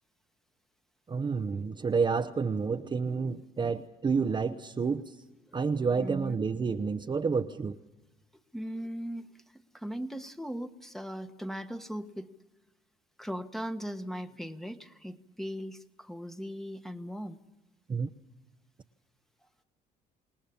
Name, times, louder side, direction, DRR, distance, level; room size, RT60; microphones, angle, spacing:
voice 1, 1.1-5.0 5.5-7.8 17.9-18.1, right 5 dB, 25° right, 6 dB, 0.9 m, -29 dB
voice 2, 6.0-6.4 8.5-9.3 9.7-12.3 13.2-17.4, equal, ahead, 8 dB, 1.3 m, -38 dB
28.0 x 19.0 x 7.1 m, 1.1 s
cardioid pair, 110°, 17 cm